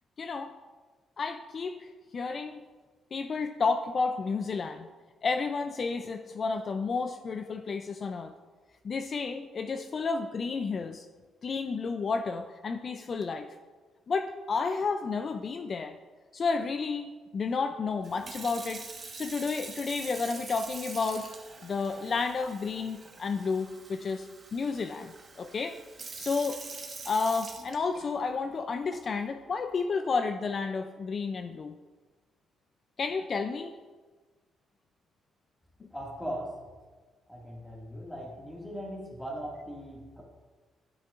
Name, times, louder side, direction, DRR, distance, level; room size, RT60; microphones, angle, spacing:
voice 1, 0.2-0.5 1.2-1.9 2.1-2.6 3.1-4.9 5.2-8.3 8.8-11.1 11.4-13.5 14.1-16.0 16.3-18.8 19.1-21.3 21.6-25.1 25.4-25.8 26.1-26.6 27.1-31.7 33.0-33.7, left 4 dB, 45° left, 7 dB, 0.4 m, -31 dB
Sink (filling or washing) / Fill (with liquid), 18.0-28.3 28.9-29.2, right 4 dB, 40° right, 1.2 m, -45 dB
voice 2, 35.9-36.4 37.3-40.2, equal, 5° left, -3 dB, 2.0 m, -39 dB
11.0 x 5.9 x 2.5 m, 1.3 s
cardioid pair, 90°, 0 cm